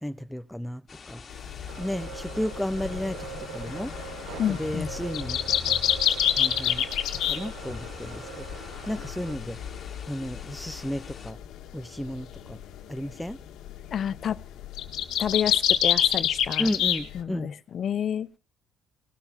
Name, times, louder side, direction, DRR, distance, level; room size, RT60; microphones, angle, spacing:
voice 1, 0.0-1.2 1.8-3.3 3.5-3.9 4.5-5.7 6.3-6.9 7.1-8.6 8.9-9.6 10.1-11.4 11.7-12.6 12.9-13.4 16.6-17.5, equal, 5° left, 0.8 m, -33 dB
sound 1, 0.9-11.3, left 5 dB, 35° left, 2.5 m, -46 dB
sound 2, 1.3-17.2, left 10 dB, 80° left, 1.7 m, -29 dB
sound 3, 1.7-9.4, right 10 dB, 90° right, 0.9 m, -43 dB
voice 2, 4.4-4.9 13.9-14.4 15.2-16.7 17.1-18.3, left 9 dB, 50° left, 0.7 m, -29 dB
19.0 x 7.0 x 7.4 m
cardioid pair, 100°, 0 cm